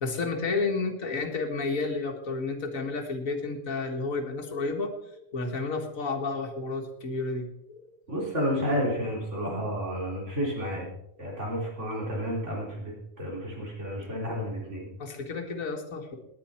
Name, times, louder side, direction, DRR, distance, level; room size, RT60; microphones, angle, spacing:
voice 1, 0.0-7.8 15.0-16.2, left 3 dB, 80° left, 2 dB, 2.0 m, -31 dB
voice 2, 8.1-10.8 11.2-14.9, equal, 60° right, -3 dB, 4.3 m, -31 dB
18.5 x 9.7 x 4.4 m, 0.82 s
omnidirectional pair, 1.4 m